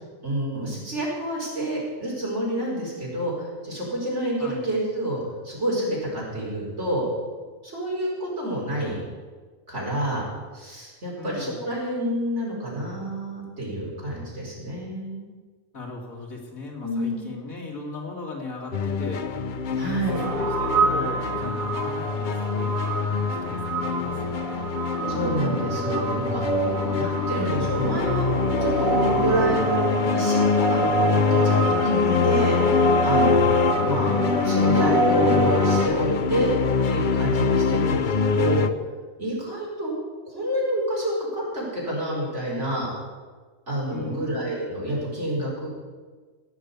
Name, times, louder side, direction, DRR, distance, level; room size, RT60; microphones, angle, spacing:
voice 1, 0.2-7.1 7.6-9.0 9.7-10.2 10.5-15.2 16.8-17.3 19.8-20.2 25.1-26.4 27.0-28.3 28.6-32.6 33.0-33.5 33.8-34.1 34.4-36.5 36.9-38.1 38.3-38.7 39.2-39.9 40.3-42.9 43.7-45.7, right 1 dB, 55° right, -5 dB, 5.4 m, -28 dB
voice 2, 11.2-11.6 15.7-19.2 19.7-20.0 20.4-24.7 26.2-27.1 37.6-38.0 43.9-44.4, left 3 dB, 80° left, -1 dB, 3.2 m, -37 dB
sound 1, 18.7-38.7, left 5 dB, 50° left, 0.6 m, -24 dB
sound 2, 20.1-35.8, right 4 dB, 80° right, 2.3 m, -28 dB
17.5 x 6.9 x 8.4 m, 1.4 s
omnidirectional pair, 1.4 m